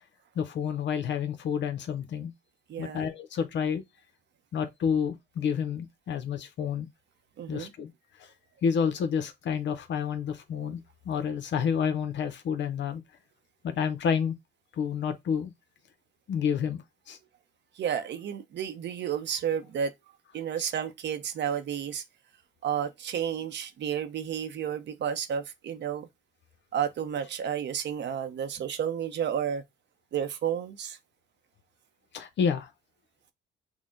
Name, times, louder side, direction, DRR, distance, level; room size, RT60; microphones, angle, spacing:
voice 1, 0.4-2.3 2.8-3.8 4.5-6.9 7.5-7.9 8.2-8.3 8.6-10.8 11.1-13.0 13.6-14.4 14.8-15.5 16.3-16.8 17.1-17.2 32.1-32.7, left 7 dB, 65° left, 0.7 m, -29 dB
voice 2, 2.7-3.0 7.4-7.7 17.8-19.9 20.3-22.0 22.6-26.1 26.7-29.6 30.1-31.0, right 8 dB, 65° right, 0.7 m, -31 dB
6.1 x 2.1 x 3.6 m
cardioid pair, 90°, 20 cm